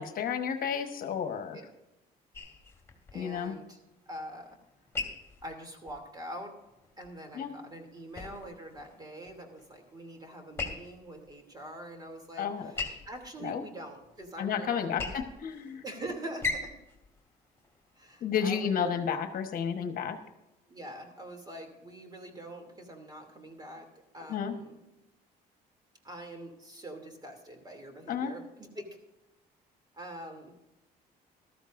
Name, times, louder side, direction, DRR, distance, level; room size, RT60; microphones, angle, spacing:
voice 1, 0.0-1.6 3.1-3.6 7.3-7.5 12.4-12.7 13.4-13.6 14.4-15.8 18.2-20.2 24.3-24.6 28.1-28.3, left 7 dB, 55° left, 7 dB, 1.2 m, -32 dB
sound 1, 2.3-18.4, left 4 dB, 15° left, 2.5 m, -42 dB
voice 2, 3.1-3.8 4.1-4.5 5.4-6.5 7.0-15.2 15.8-16.7 18.0-18.9 20.7-23.9 24.1-24.7 26.0-28.9 29.9-30.5, right 1 dB, 25° right, 4 dB, 2.8 m, -44 dB
14.5 x 13.0 x 2.6 m, 0.96 s
cardioid pair, 110°, 17 cm